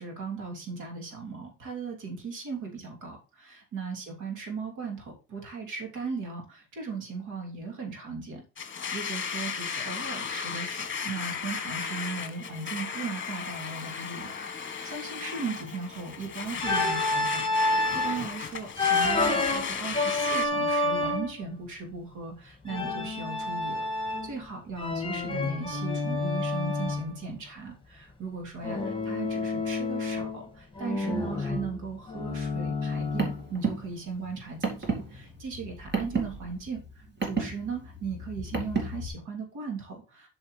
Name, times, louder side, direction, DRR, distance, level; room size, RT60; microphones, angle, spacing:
voice 1, 0.0-17.4 17.7-40.3, right 4 dB, 85° right, 2 dB, 3.1 m, -37 dB
Domestic sounds home sounds, 8.6-20.5, left 7 dB, 40° left, 1.2 m, -35 dB
Organ, 16.6-18.2 18.8-21.4 22.7-24.4 24.8-27.1 28.6-30.4 30.8-33.5, left 2 dB, 15° left, 2.0 m, -29 dB
Car, 32.8-39.1, right 4 dB, 35° right, 2.2 m, -33 dB
8.1 x 6.2 x 3.3 m, 0.32 s
cardioid pair, 90°, 30 cm